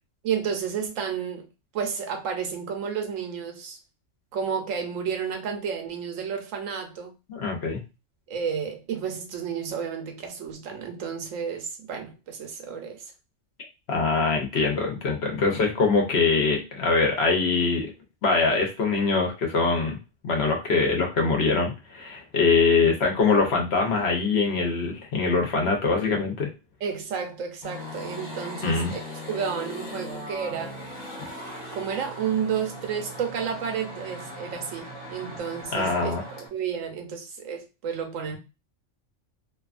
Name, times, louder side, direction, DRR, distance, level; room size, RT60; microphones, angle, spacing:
voice 1, 0.2-1.5 1.7-3.8 4.3-7.1 8.3-13.0 26.8-29.0 29.3-30.8 31.7-38.4, right 7 dB, 85° right, 1.1 m, -31 dB
voice 2, 7.3-7.8 13.9-17.9 18.2-20.0 20.2-26.5 28.6-28.9 35.7-36.2, left 4 dB, 60° left, 0.9 m, -23 dB
sound 1, 27.6-36.5, equal, 40° left, 1.0 m, -39 dB
2.7 x 2.4 x 2.4 m
omnidirectional pair, 1.3 m